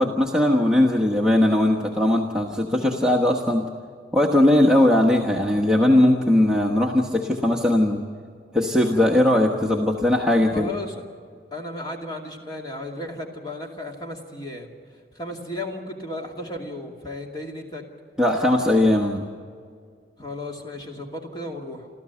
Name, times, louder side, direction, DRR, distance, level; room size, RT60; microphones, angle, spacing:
voice 1, 0.0-3.6 4.1-8.0 8.5-10.7 18.2-19.2, left 1 dB, 5° right, -2 dB, 1.2 m, -19 dB
voice 2, 10.5-11.0 11.5-14.7 15.1-17.8 20.2-21.9, left 1 dB, 25° left, 0 dB, 2.5 m, -34 dB
28.0 x 13.5 x 7.2 m, 2.1 s
head